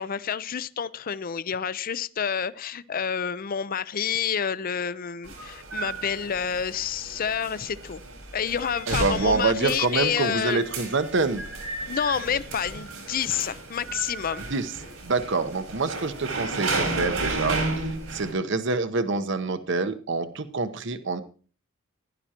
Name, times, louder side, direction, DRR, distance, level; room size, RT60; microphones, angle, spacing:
voice 1, 0.0-8.0 8.3-10.6 11.9-14.5, left 7 dB, 45° left, 16 dB, 0.5 m, -29 dB
sound 1, 5.2-18.3, right 2 dB, 85° right, 4.8 m, -33 dB
voice 2, 8.9-11.4 14.5-14.7 15.0-21.2, right 3 dB, 60° right, 11 dB, 0.9 m, -26 dB
16.0 x 11.5 x 2.9 m, 0.37 s
head